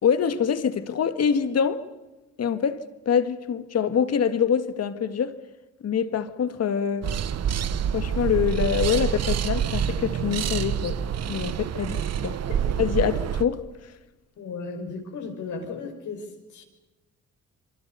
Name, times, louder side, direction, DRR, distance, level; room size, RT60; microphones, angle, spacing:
voice 1, 0.0-1.8 2.4-2.8 3.1-5.4 5.8-7.1 7.9-11.0 11.3-12.4 12.8-13.9, left 7 dB, 55° left, 1.9 m, -25 dB
sound 1, 7.0-13.4, right 9 dB, 55° right, 1.2 m, -27 dB
voice 2, 14.4-16.6, left 4 dB, 75° left, 5.7 m, -35 dB
27.5 x 23.5 x 6.8 m
cardioid pair, 90°, 30 cm